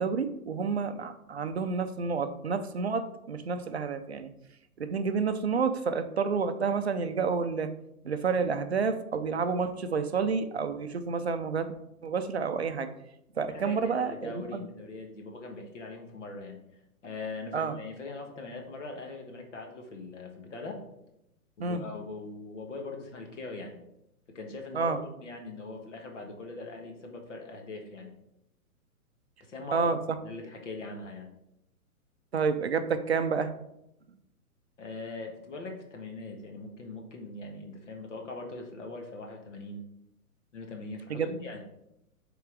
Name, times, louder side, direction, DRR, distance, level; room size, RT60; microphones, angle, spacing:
voice 1, 0.0-4.3 4.8-7.7 8.0-11.7 12.0-12.9 13.4-14.6 17.5-17.8 21.6-21.8 24.7-25.0 29.7-30.0 32.3-33.5 41.1-41.3, right 5 dB, 45° right, 9 dB, 0.5 m, -29 dB
voice 2, 13.5-16.6 17.0-20.8 21.6-23.7 24.3-28.1 29.4-29.9 30.2-31.3 34.8-39.8 40.5-41.6, left 3 dB, 55° left, 2 dB, 1.5 m, -41 dB
7.0 x 3.9 x 4.6 m, 0.82 s
hypercardioid pair, 180°, 45 cm